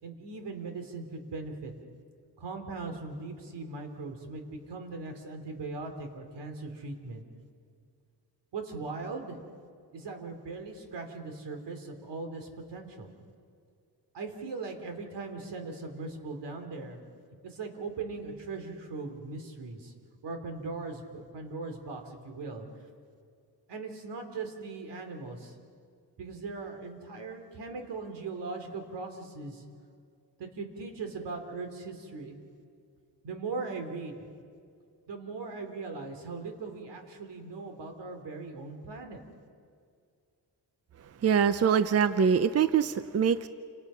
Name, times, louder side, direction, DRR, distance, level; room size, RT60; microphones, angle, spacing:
voice 1, 0.0-1.7 2.4-7.2 8.5-9.4 9.9-13.1 14.1-17.0 17.4-19.9 20.2-22.6 23.7-25.6 26.2-29.6 30.4-32.4 33.2-34.3 35.1-39.2, right 3 dB, 85° right, 5 dB, 3.4 m, -39 dB
voice 2, 41.2-43.5, right 7 dB, 35° right, 12 dB, 0.6 m, -24 dB
29.5 x 27.5 x 5.7 m, 2.3 s
wide cardioid pair, 160°, 41 cm